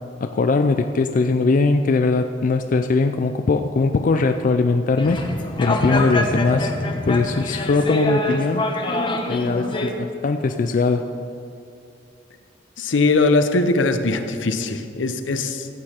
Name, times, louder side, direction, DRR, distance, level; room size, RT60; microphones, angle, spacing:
voice 1, 0.2-5.2 5.6-6.7 7.1-8.7 9.3-11.1, left 3 dB, 45° left, 7 dB, 0.4 m, -20 dB
sound 1, 5.0-9.9, left 1 dB, 25° left, 0.9 m, -24 dB
voice 2, 12.8-15.7, left 3 dB, 75° left, 8 dB, 0.7 m, -20 dB
14.5 x 8.5 x 4.4 m, 2.6 s
head